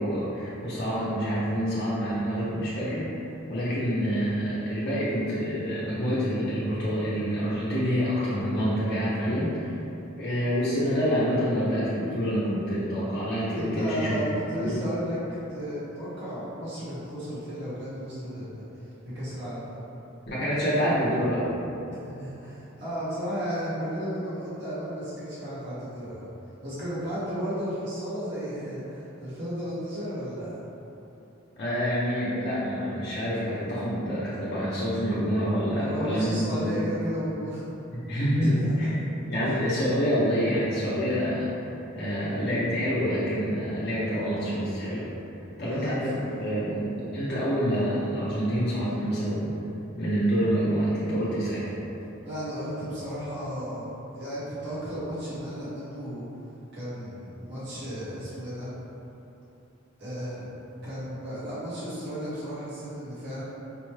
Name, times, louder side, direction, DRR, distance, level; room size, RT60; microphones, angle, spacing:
voice 1, 0.0-3.0 3.5-9.8 10.2-14.3 14.6-14.8 20.3-21.5 31.6-36.8 37.9-38.9 39.3-41.5 41.9-45.0 45.6-49.6 50.0-51.6, equal, 55° left, -10 dB, 0.7 m, -27 dB
voice 2, 13.5-19.8 22.0-26.3 26.6-30.5 35.8-37.7 38.4-38.7 45.6-46.4 52.2-56.2 56.7-58.8 60.0-60.6 60.8-63.4, equal, 60° right, -11 dB, 1.3 m, -34 dB
5.2 x 2.2 x 3.2 m, 3.0 s
head